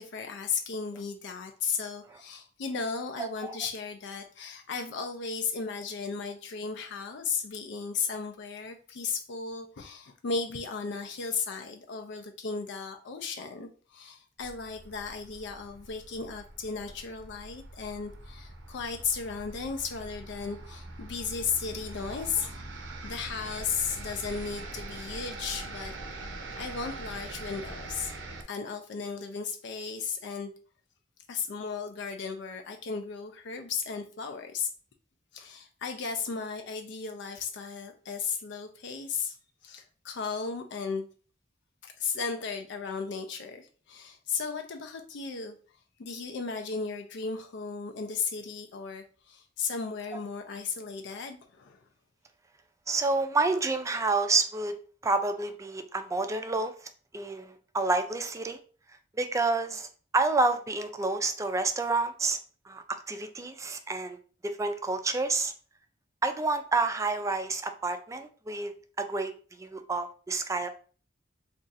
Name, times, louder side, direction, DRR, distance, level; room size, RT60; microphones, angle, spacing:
voice 1, 0.0-22.6 23.0-25.9 26.6-28.1 28.5-30.5 31.3-34.7 35.3-39.4 39.6-41.1 41.8-45.6 46.0-51.8, left 5 dB, 65° left, 5 dB, 0.4 m, -35 dB
voice 2, 3.2-3.6 52.9-54.7 55.0-56.7 57.1-58.6 59.2-62.4 62.7-64.2 64.4-65.5 66.2-70.7, right 3 dB, 15° right, 8 dB, 0.3 m, -29 dB
sound 1, 14.4-28.4, right 2 dB, 70° right, 0.6 m, -43 dB
2.6 x 2.4 x 3.9 m, 0.40 s
head